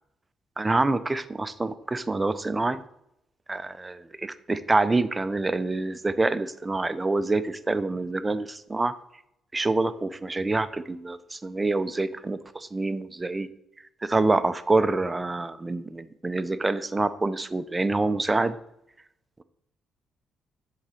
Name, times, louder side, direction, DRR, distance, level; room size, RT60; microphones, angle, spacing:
voice 1, 0.6-2.8 3.5-8.9 9.5-13.5 14.0-18.6, right 2 dB, 20° right, 13 dB, 0.5 m, -26 dB
7.1 x 3.9 x 4.9 m, 0.80 s
cardioid pair, 90°, 0 cm